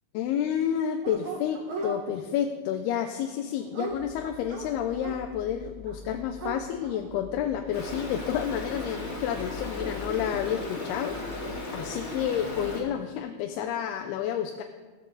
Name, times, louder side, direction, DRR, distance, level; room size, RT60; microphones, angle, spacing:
voice 1, 0.1-14.6, left 9 dB, 80° left, 5 dB, 2.6 m, -30 dB
Dog, 1.0-2.0 3.1-5.2 5.9-6.0 6.2-7.0, right 3 dB, 60° right, 1.3 m, -37 dB
sound 1, 3.9-11.5, left 4 dB, 40° right, 0.8 m, -46 dB
Stream, 7.7-12.8, left 2 dB, 30° left, 1.3 m, -36 dB
16.5 x 14.0 x 4.0 m, 1.3 s
omnidirectional pair, 4.8 m